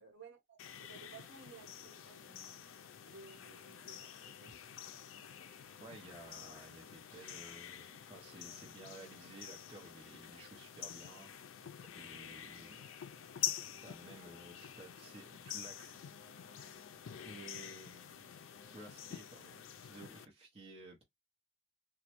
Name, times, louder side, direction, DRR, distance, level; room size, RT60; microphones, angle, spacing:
voice 1, 0.0-2.6 3.0-4.5 12.2-12.4, right 4 dB, 60° right, 1.0 m, -57 dB
sound 1, 0.6-20.2, left 10 dB, 75° left, 0.4 m, -47 dB
voice 2, 5.8-11.3 11.8-12.9 13.8-16.0 17.3-18.3 18.7-21.0, right 2 dB, 30° right, 0.7 m, -54 dB
3.0 x 2.2 x 2.9 m
head